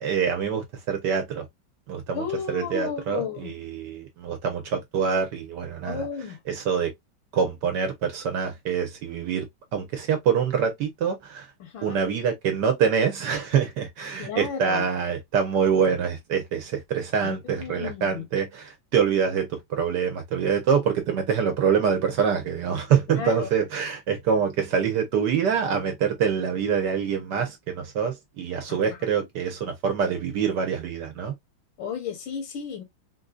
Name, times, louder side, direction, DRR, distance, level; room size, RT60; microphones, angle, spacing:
voice 1, 0.0-1.5 1.9-6.1 6.5-6.9 7.3-11.5 11.8-31.3, right 7 dB, 70° right, 1.2 m, -25 dB
voice 2, 2.1-3.5 5.8-6.4 11.6-12.0 14.2-14.9 17.2-18.2 23.2-23.5 28.7-28.8 31.8-32.8, left 6 dB, 85° left, 1.6 m, -33 dB
3.8 x 2.6 x 2.3 m
omnidirectional pair, 2.1 m